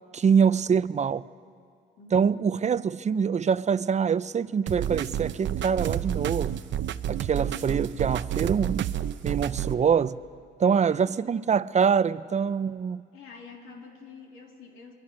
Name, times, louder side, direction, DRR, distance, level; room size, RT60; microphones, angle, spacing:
voice 1, 0.1-1.2 2.1-6.6 7.1-8.9 9.2-10.2 10.6-13.1, right 6 dB, 35° right, 0.6 m, -24 dB
voice 2, 2.0-2.6 10.7-11.1 13.1-14.9, left 4 dB, 85° left, 3.3 m, -47 dB
sound 1, 4.7-9.7, right 11 dB, 70° right, 0.8 m, -30 dB
28.0 x 22.5 x 6.4 m
cardioid pair, 90°, 20 cm